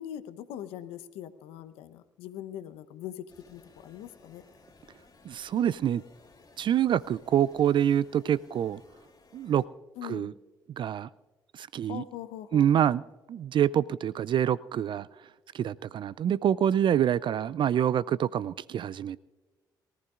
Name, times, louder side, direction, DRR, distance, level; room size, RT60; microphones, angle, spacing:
voice 1, 0.0-4.4 10.0-10.3 11.8-12.7, left 11 dB, 75° left, 11 dB, 0.9 m, -41 dB
sound 1, 3.3-9.7, left 3 dB, 40° left, 3.0 m, -58 dB
voice 2, 5.3-6.0 6.6-8.8 9.3-9.6 10.0-10.3 10.8-11.1 11.5-12.0 12.5-13.0 13.3-15.1 15.5-19.2, right 10 dB, 55° right, 20 dB, 0.4 m, -26 dB
23.0 x 14.5 x 2.5 m, 1.2 s
hypercardioid pair, 45°, 10 cm